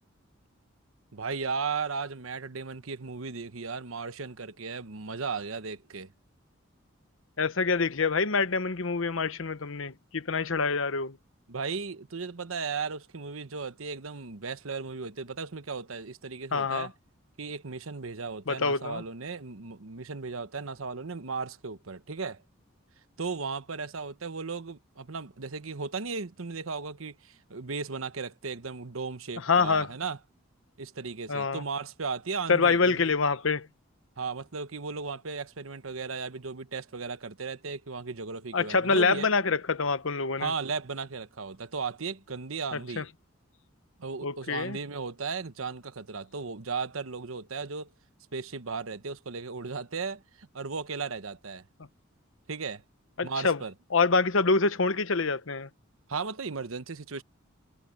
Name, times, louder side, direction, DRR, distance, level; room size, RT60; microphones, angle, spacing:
voice 1, 1.1-6.1 11.5-16.9 17.4-22.4 23.2-30.2 30.8-33.1 34.2-39.3 40.4-43.1 44.0-47.9 48.3-51.6 52.5-52.8 53.2-53.7 56.1-57.2, right 4 dB, 85° right, 1.1 m, -36 dB
voice 2, 7.4-11.2 16.5-16.9 18.5-19.0 29.4-29.9 31.3-31.6 32.5-33.7 38.5-40.5 42.7-43.0 44.2-44.8 53.2-53.6 53.9-55.7, left 4 dB, 70° left, 1.0 m, -26 dB
head